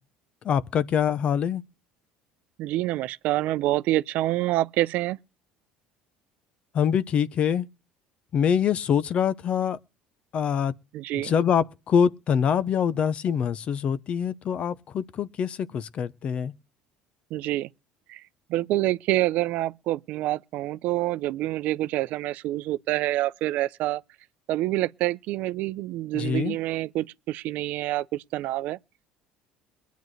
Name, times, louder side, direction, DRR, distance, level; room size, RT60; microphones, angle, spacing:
voice 1, 0.4-1.6 6.7-7.7 8.3-9.8 10.3-10.7 11.1-16.5 26.1-26.6, left 8 dB, 40° left, 0.7 m, -24 dB
voice 2, 2.6-5.2 10.9-11.3 17.3-17.7 18.1-18.2 18.5-24.0 24.5-28.8, right 16 dB, 65° right, 0.5 m, -27 dB
22.5 x 9.2 x 3.2 m
cardioid pair, 125°, 3 cm